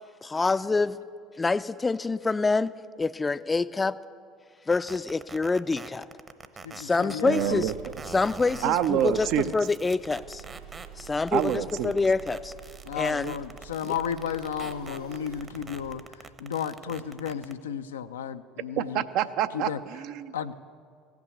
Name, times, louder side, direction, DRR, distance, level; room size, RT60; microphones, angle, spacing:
voice 1, 0.2-1.0 1.4-2.7 3.0-4.0 4.7-6.1 6.7-7.7 8.1-9.3 9.5-10.4 11.0-12.5 12.9-13.3 13.8-13.9, left 3 dB, 20° left, 15 dB, 0.4 m, -26 dB
sound 1, 4.7-17.5, right 4 dB, 30° right, 0.8 m, -43 dB
voice 2, 6.6-7.6 12.9-16.0 16.4-19.0 19.5-19.8 20.3-20.6, left 8 dB, 85° left, 10 dB, 0.4 m, -33 dB
voice 3, 7.2-7.7 8.6-9.6 11.3-12.0 18.8-20.3, right 11 dB, 60° right, 12 dB, 0.5 m, -27 dB
sound 2, 7.3-16.0, right 8 dB, 85° right, 1.9 m, -46 dB
15.0 x 6.0 x 8.2 m, 2.3 s
hypercardioid pair, 70°, 0 cm